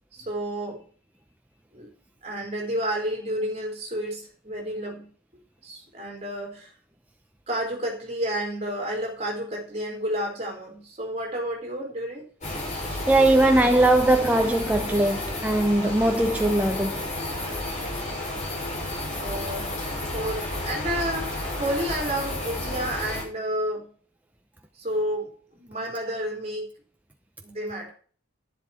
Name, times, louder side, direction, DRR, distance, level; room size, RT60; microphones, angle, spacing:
voice 1, 0.1-0.8 1.7-1.9 2.2-5.1 5.6-6.7 7.5-12.2 13.2-13.4 17.4-18.1 19.1-19.8 20.1-23.9 24.8-26.7 27.4-27.9, equal, 30° right, 4.0 m, -31 dB
sound 1, 12.4-23.2, left 1 dB, 35° left, 6.0 m, -31 dB
voice 2, 13.1-17.1, right 1 dB, 5° right, 0.7 m, -20 dB
11.0 x 10.5 x 4.4 m
head